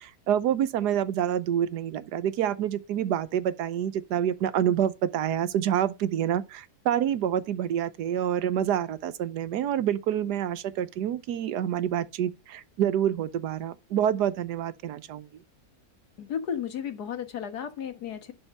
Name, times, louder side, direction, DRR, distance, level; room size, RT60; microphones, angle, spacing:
voice 1, 0.0-15.3, right 10 dB, 90° right, 1.3 m, -27 dB
voice 2, 16.2-18.3, left 8 dB, 75° left, 1.9 m, -33 dB
11.5 x 4.3 x 5.4 m
omnidirectional pair, 1.7 m